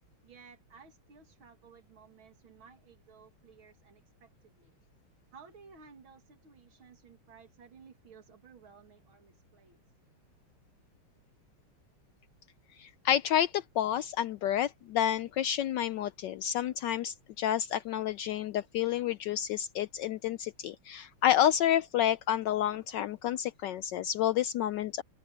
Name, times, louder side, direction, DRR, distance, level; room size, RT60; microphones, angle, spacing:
voice 1, 0.2-4.8 5.3-9.8, right 5 dB, 65° right, 3.1 m, -56 dB
voice 2, 12.8-25.0, left 11 dB, 80° left, 0.9 m, -29 dB
open air
omnidirectional pair, 2.4 m